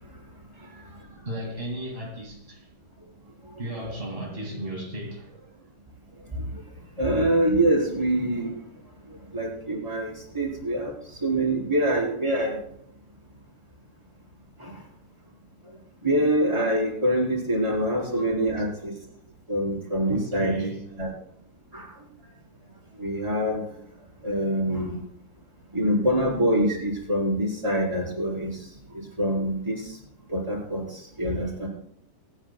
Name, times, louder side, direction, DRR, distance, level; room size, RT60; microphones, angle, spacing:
voice 1, 0.5-2.7 3.6-5.7 18.0-18.2 18.6-18.7 20.1-20.9, right 1 dB, 40° right, 0.8 m, -35 dB
voice 2, 7.0-8.5 9.1-10.9 11.2-12.6 14.6-14.8 16.0-18.9 19.5-20.6 21.0-21.1 21.7-21.9 23.0-23.6 24.2-25.0 25.7-28.6 28.9-30.0 30.3-31.7, right 1 dB, 5° right, 3.2 m, -25 dB
25.5 x 9.7 x 2.2 m
omnidirectional pair, 5.0 m